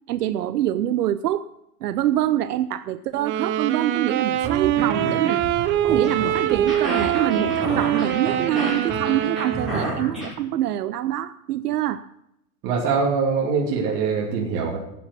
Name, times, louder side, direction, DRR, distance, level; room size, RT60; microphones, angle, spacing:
voice 1, 0.1-1.5 1.8-5.4 5.8-12.0, right 12 dB, 80° right, 13 dB, 0.8 m, -25 dB
sound 1, 3.2-10.0, right 12 dB, 25° right, 0.6 m, -24 dB
sound 2, 4.3-10.3, right 1 dB, ahead, 5.8 m, -30 dB
voice 2, 12.6-14.8, right 5 dB, 40° right, -2 dB, 2.8 m, -23 dB
13.0 x 8.6 x 7.0 m, 0.80 s
hypercardioid pair, 125°, 46 cm